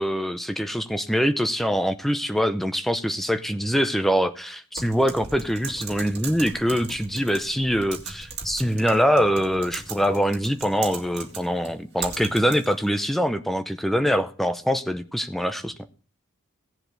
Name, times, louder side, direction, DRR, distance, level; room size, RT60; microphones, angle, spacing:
voice 1, 0.0-15.7, equal, ahead, 9 dB, 0.6 m, -24 dB
Typing, 4.8-12.9, right 5 dB, 50° right, 2.2 m, -38 dB
17.0 x 7.7 x 3.2 m, 0.39 s
head